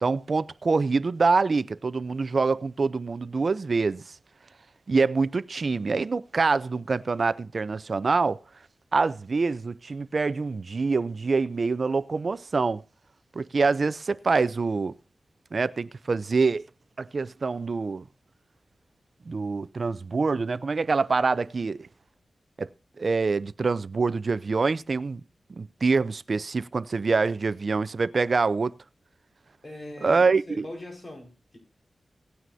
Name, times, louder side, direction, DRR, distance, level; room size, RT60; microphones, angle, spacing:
voice 1, 0.0-4.0 4.9-8.4 8.9-12.8 13.4-14.9 15.5-16.7 17.0-18.0 19.3-21.9 22.6-22.7 23.0-25.2 25.6-28.7 30.0-30.7, right 4 dB, 60° right, 0.5 m, -25 dB
voice 2, 29.6-31.6, left 1 dB, 35° left, 5.0 m, -41 dB
18.0 x 9.4 x 2.7 m
wide cardioid pair, 75°, 0 cm